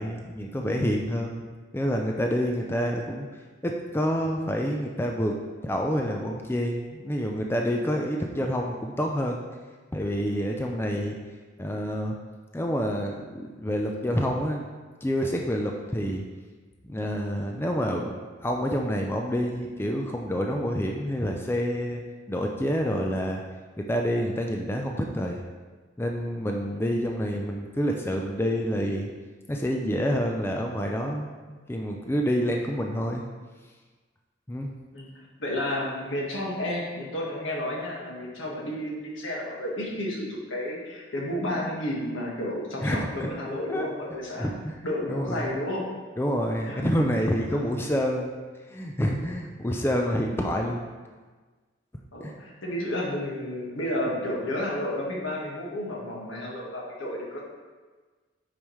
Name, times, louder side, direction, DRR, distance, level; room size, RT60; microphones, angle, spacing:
voice 1, 0.0-1.4 1.7-3.3 3.6-5.3 5.6-9.4 9.9-11.2 11.6-12.2 12.5-14.7 15.0-16.2 16.8-18.1 18.4-22.0 22.3-23.4 23.8-25.4 26.0-29.1 29.5-33.2 34.5-34.7 42.8-43.3 43.7-43.9 44.4-44.7 45.1-45.6 46.2-48.4 48.7-50.8 52.2-52.3, equal, 10° left, 1 dB, 0.4 m, -28 dB
voice 2, 35.4-44.5 44.8-45.8 46.6-46.9 47.5-47.6 52.1-57.4, left 1 dB, 85° left, -3 dB, 1.6 m, -31 dB
8.8 x 4.9 x 3.1 m, 1.4 s
head